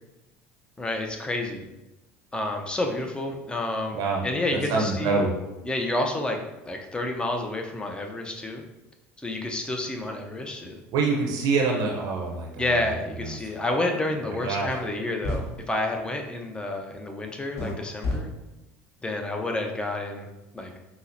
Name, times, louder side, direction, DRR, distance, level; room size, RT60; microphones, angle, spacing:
voice 1, 0.8-1.7 2.3-5.2 5.6-8.6 9.2-10.8 12.6-18.3 19.0-20.3 20.5-20.7, left 2 dB, 15° left, 2 dB, 0.5 m, -29 dB
voice 2, 3.9-4.2 4.7-5.3 10.9-12.9 14.4-14.8, right 4 dB, 60° right, 0 dB, 0.6 m, -25 dB
sound 1, 14.8-14.9 15.2-15.5 17.6-17.7 18.0-18.2, left 2 dB, 45° left, 1.1 m, -29 dB
5.6 x 2.0 x 2.6 m, 1.0 s
hypercardioid pair, 80°, 7 cm